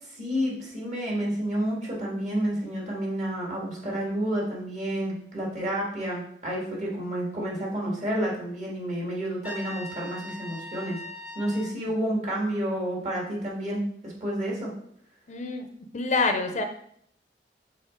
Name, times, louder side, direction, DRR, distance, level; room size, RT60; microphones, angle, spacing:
voice 1, 0.0-11.0 11.4-14.7, right 1 dB, 45° right, -4 dB, 2.2 m, -30 dB
Trumpet, 9.4-11.8, left 2 dB, 5° right, 0.7 m, -40 dB
voice 2, 15.3-16.6, left 3 dB, 40° left, 6 dB, 0.6 m, -27 dB
6.4 x 4.3 x 3.8 m, 0.67 s
head